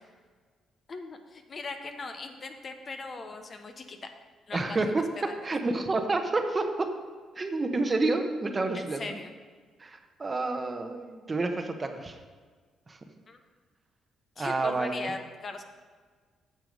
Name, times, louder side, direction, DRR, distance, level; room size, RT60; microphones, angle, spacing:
voice 1, 0.9-4.1 4.5-5.4 8.7-9.3 13.3-13.4 14.4-15.6, left 3 dB, 40° left, 6 dB, 0.9 m, -39 dB
voice 2, 4.5-5.0 5.4-6.9 7.4-9.1 9.8-12.2 12.9-13.0 14.4-15.1, right 3 dB, 30° right, 6 dB, 1.0 m, -29 dB
9.3 x 6.8 x 5.3 m, 1.5 s
cardioid pair, 90°, 0 cm